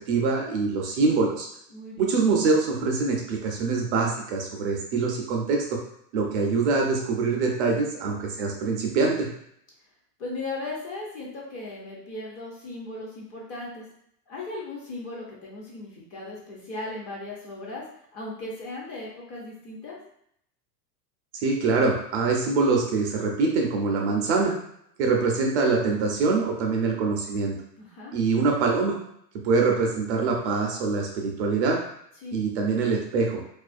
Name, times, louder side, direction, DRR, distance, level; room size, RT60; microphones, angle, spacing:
voice 1, 0.1-1.5 2.0-5.8 6.1-9.3 21.4-24.5 25.0-27.6 28.1-29.0 29.4-31.8 32.3-33.4, right 4 dB, 45° right, 0 dB, 0.4 m, -24 dB
voice 2, 1.7-2.1 10.2-13.8 14.3-17.9 18.1-20.0 27.8-28.1 32.2-32.4, left 2 dB, 30° left, -4 dB, 0.5 m, -37 dB
2.4 x 2.1 x 2.4 m, 0.72 s
supercardioid pair, 135°, 49 cm